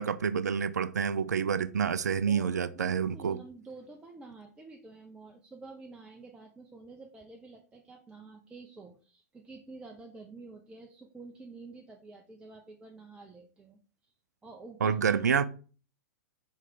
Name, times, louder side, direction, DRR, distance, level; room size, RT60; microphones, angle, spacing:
voice 1, 0.0-3.4 14.8-15.5, right 7 dB, 75° right, 0.4 m, -28 dB
voice 2, 2.3-14.1 14.4-15.2, right 3 dB, 10° right, 0.5 m, -49 dB
4.4 x 3.1 x 3.7 m
figure-of-eight pair, 100°, 9 cm